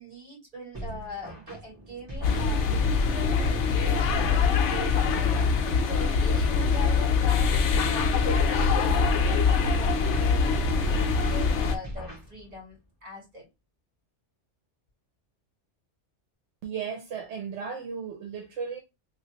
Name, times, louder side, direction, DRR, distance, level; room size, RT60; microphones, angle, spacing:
voice 1, 0.0-13.5, left 1 dB, 45° right, 2.0 m, -42 dB
sound 1, 0.7-4.9 8.5-12.8, right 1 dB, 20° right, 1.2 m, -41 dB
sound 2, 2.2-11.8, left 5 dB, 85° left, 0.9 m, -23 dB
voice 2, 16.6-18.8, right 6 dB, 80° right, 0.9 m, -35 dB
3.1 x 2.4 x 2.7 m
omnidirectional pair, 1.2 m